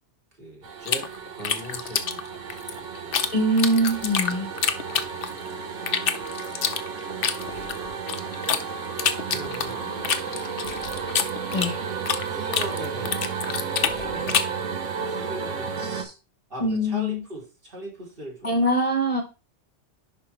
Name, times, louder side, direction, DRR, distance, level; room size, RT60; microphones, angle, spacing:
voice 1, 0.3-3.2 4.7-6.3 9.0-10.4 12.3-14.7 14.9-16.0 16.5-18.6, equal, 50° right, -2 dB, 3.0 m, -41 dB
sound 1, 0.6-16.0, right 6 dB, 85° right, 1.4 m, -33 dB
sound 2, 0.9-3.3 3.6-5.5 5.9-8.6 9.0-12.3 12.5-14.6, left 7 dB, 55° left, 0.8 m, -26 dB
voice 2, 3.3-4.5 11.5-11.8 15.9-16.1 16.6-17.2 18.4-19.2, equal, 30° left, 4 dB, 1.0 m, -23 dB
10.5 x 4.4 x 3.1 m, 0.30 s
omnidirectional pair, 1.2 m